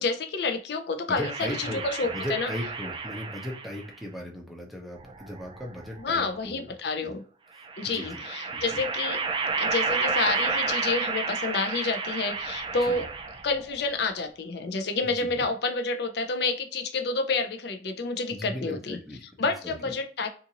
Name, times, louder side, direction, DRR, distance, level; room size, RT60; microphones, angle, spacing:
voice 1, 0.0-2.5 6.0-7.2 7.8-9.2 9.6-13.1 13.4-19.0 19.4-20.3, left 3 dB, 60° left, 6 dB, 0.5 m, -29 dB
voice 2, 1.1-6.7 7.0-7.1 7.5-8.2 8.5-8.8 12.8-13.0 15.0-15.5 18.3-19.9, equal, ahead, 0 dB, 0.7 m, -38 dB
sound 1, 1.2-3.9 5.0-6.0 7.6-13.6, right 4 dB, 30° right, 0.3 m, -31 dB
2.5 x 2.5 x 2.8 m, 0.41 s
head